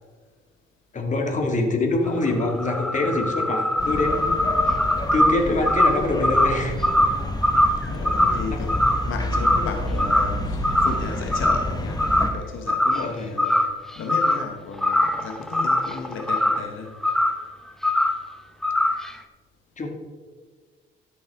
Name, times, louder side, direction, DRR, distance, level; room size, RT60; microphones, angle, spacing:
voice 1, 0.9-4.4 5.1-6.8 7.6-7.7 8.5-8.6 13.0-13.3 19.8-19.9, left 2 dB, 40° left, 3 dB, 1.9 m, -24 dB
sound 1, 2.1-9.7 10.0-10.4 10.6-11.7 12.0-12.3 12.7-13.1 13.4-14.5 14.8-16.7 17.0-17.4 17.8-18.2 18.6-19.1, left 1 dB, ahead, 0.8 m, -22 dB
sound 2, 3.8-12.3, left 1 dB, 20° left, 1.2 m, -29 dB
voice 2, 7.9-12.0 12.3-13.6 14.0-16.9, left 5 dB, 80° left, 4 dB, 1.1 m, -34 dB
13.5 x 7.6 x 3.5 m, 1.5 s
cardioid pair, 90°, 20 cm